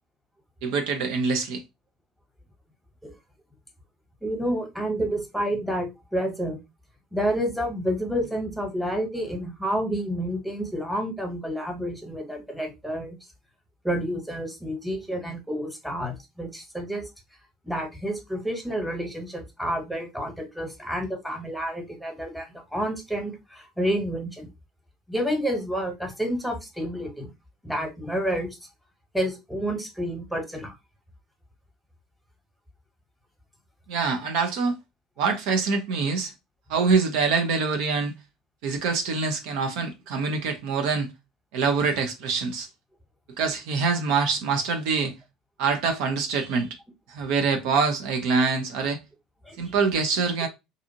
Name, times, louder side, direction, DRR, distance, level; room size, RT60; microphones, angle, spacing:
voice 1, 0.6-1.6 33.9-34.8 35.2-36.3 36.7-38.1 38.6-41.1 41.5-42.7 43.4-45.1 45.6-46.7 47.1-49.0 49.6-50.5, right 4 dB, 65° right, 0.5 m, -25 dB
voice 2, 4.2-6.6 7.1-13.2 13.8-17.0 17.6-24.5 25.1-27.3 27.6-28.5 29.1-30.7 49.4-49.7, equal, ahead, 1.1 m, -29 dB
2.6 x 2.4 x 2.7 m
hypercardioid pair, 65°, 0 cm